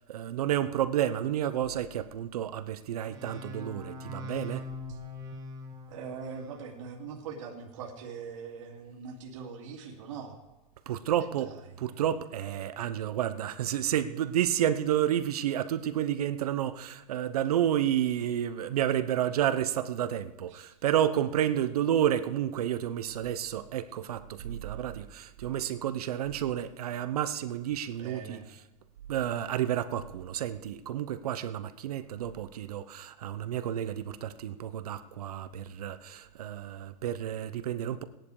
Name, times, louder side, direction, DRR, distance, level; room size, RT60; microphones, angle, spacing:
voice 1, 0.1-4.6 10.9-11.5 11.8-28.4 29.1-38.0, right 10 dB, 75° right, 1.1 m, -30 dB
sound 1, 3.1-6.7, left 3 dB, 15° right, 1.3 m, -42 dB
voice 2, 5.9-10.4 11.4-11.6 20.5-20.8 28.0-28.5, right 6 dB, 55° right, 2.5 m, -42 dB
18.0 x 10.5 x 4.9 m
supercardioid pair, 180°, 20 cm